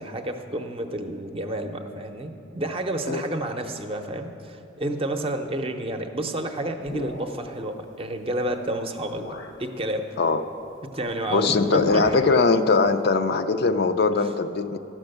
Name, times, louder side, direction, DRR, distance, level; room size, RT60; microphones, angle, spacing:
voice 1, 0.0-10.2 10.8-12.2, right 1 dB, 30° right, 6 dB, 0.7 m, -30 dB
sound 1, 6.8-7.6 8.5-8.6 9.2-9.6 11.0-11.3 11.5-12.3, left 2 dB, 85° left, 0.8 m, -38 dB
voice 2, 11.3-14.8, left 4 dB, 55° left, 9 dB, 0.4 m, -21 dB
12.0 x 6.1 x 7.8 m, 2.7 s
head